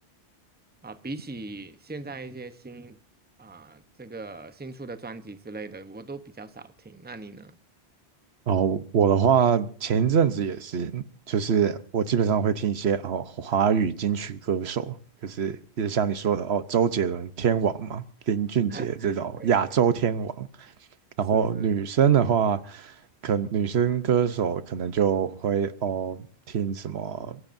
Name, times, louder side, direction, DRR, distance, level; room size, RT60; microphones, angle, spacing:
voice 1, 0.8-3.0 3.4-7.6 18.7-19.6 21.3-21.7, right 3 dB, 10° right, 0.8 m, -40 dB
voice 2, 8.5-15.0 15.2-20.5 21.2-22.9 23.2-27.4, right 7 dB, 75° right, 1.1 m, -24 dB
30.0 x 16.0 x 2.6 m
omnidirectional pair, 1.1 m